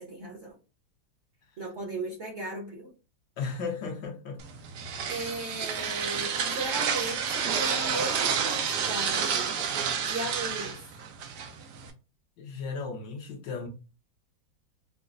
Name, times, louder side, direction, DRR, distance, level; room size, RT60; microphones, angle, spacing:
voice 1, 0.1-0.5 1.6-2.9 5.1-9.5 10.1-11.0, right 2 dB, 50° right, 1.0 m, -37 dB
voice 2, 3.4-4.4 12.4-13.7, left 4 dB, 70° left, 1.4 m, -35 dB
sound 1, 4.4-11.9, right 7 dB, 70° right, 1.2 m, -30 dB
5.1 x 2.1 x 2.4 m
omnidirectional pair, 2.1 m